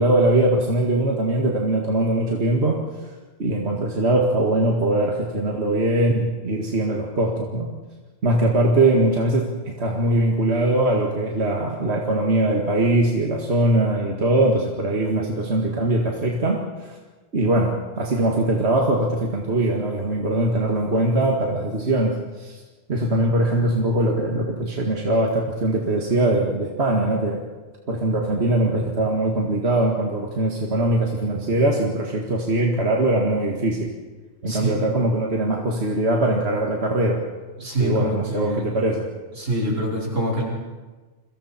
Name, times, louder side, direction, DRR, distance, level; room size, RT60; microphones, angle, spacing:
voice 1, 0.0-2.8 3.4-7.7 8.2-17.0 17.3-22.6 22.9-27.4 27.9-33.9 34.4-37.3 37.8-39.1, right 1 dB, 55° right, 0 dB, 2.2 m, -21 dB
voice 2, 34.5-34.9 37.6-38.7 39.3-40.4, right 1 dB, 80° right, -3 dB, 5.5 m, -25 dB
29.5 x 23.5 x 4.4 m, 1.3 s
omnidirectional pair, 1.3 m